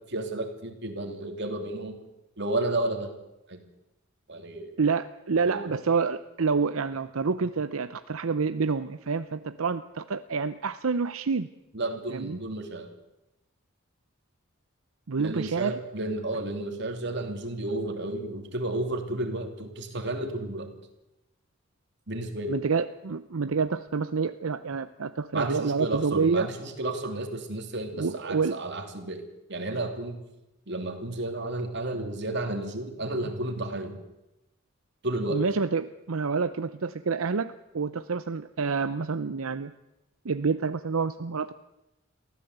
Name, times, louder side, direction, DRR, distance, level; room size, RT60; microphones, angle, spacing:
voice 1, 0.1-2.0 2.4-3.1 3.5-3.6 4.3-4.8 5.5-5.7 11.7-12.9 15.2-20.7 22.1-22.6 25.3-29.2 29.5-30.2 30.7-34.0 35.0-35.4, right 2 dB, 55° right, 5 dB, 3.0 m, -32 dB
voice 2, 4.8-11.5 12.1-12.4 15.1-15.8 22.5-26.5 28.0-28.6 35.3-39.7 40.2-41.5, right 5 dB, 85° right, 11 dB, 0.7 m, -28 dB
23.0 x 15.5 x 8.0 m, 0.92 s
head